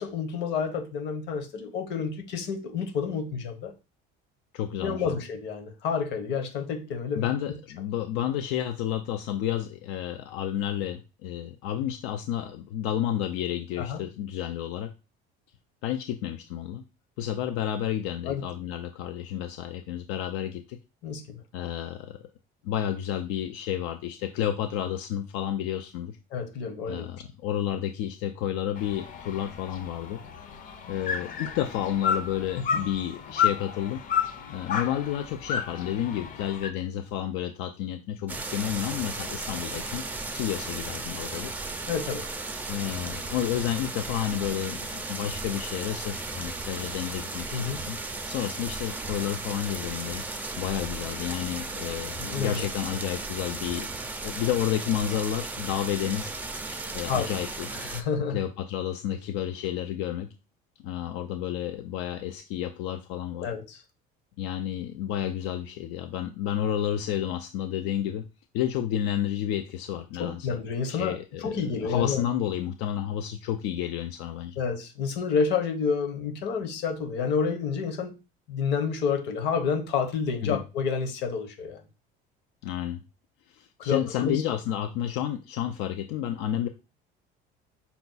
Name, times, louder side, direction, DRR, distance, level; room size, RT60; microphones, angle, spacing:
voice 1, 0.0-3.7 4.8-7.3 13.8-14.0 18.3-18.4 21.0-21.4 26.3-27.1 32.7-32.8 41.9-42.3 47.5-47.8 52.2-52.6 56.7-56.8 57.1-57.3 57.7-58.4 63.4-63.8 70.2-72.2 74.6-78.2 78.5-81.8 83.8-84.6, left 5 dB, 55° left, 5 dB, 1.1 m, -29 dB
voice 2, 4.5-5.1 7.2-14.9 15.8-16.8 17.2-20.8 21.5-22.2 22.6-26.2 26.9-30.2 30.9-34.0 34.5-40.0 40.3-41.5 42.7-48.0 48.3-50.2 50.6-53.9 54.2-56.3 56.9-57.7 58.3-60.3 60.8-63.5 64.4-68.2 68.5-70.6 70.9-74.6 80.4-80.6 82.6-83.0 83.5-86.7, left 11 dB, 85° left, 7 dB, 0.5 m, -31 dB
sound 1, 28.8-36.7, left 7 dB, 40° left, 0.6 m, -32 dB
sound 2, 38.3-58.0, right 3 dB, 10° right, 0.4 m, -35 dB
5.6 x 2.3 x 3.9 m, 0.29 s
cardioid pair, 160°, 21 cm